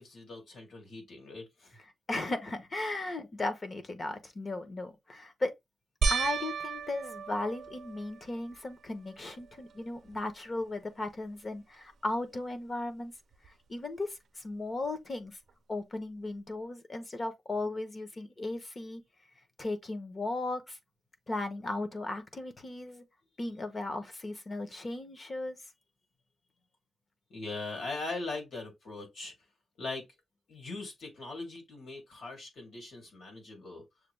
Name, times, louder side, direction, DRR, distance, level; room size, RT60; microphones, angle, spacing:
voice 1, 0.0-1.8 27.3-29.3 29.8-30.0 30.5-33.8, left 3 dB, 85° left, 2.3 m, -40 dB
voice 2, 2.1-5.5 6.1-13.1 13.4-15.4 15.7-19.0 19.6-20.8 21.3-23.0 23.4-25.6, left 2 dB, 30° left, 0.9 m, -36 dB
sound 1, 6.0-8.6 9.2-9.8 10.1-10.2 13.4-13.5, right 5 dB, 75° right, 0.5 m, -34 dB
6.6 x 2.3 x 3.3 m
wide cardioid pair, 155°, 0 cm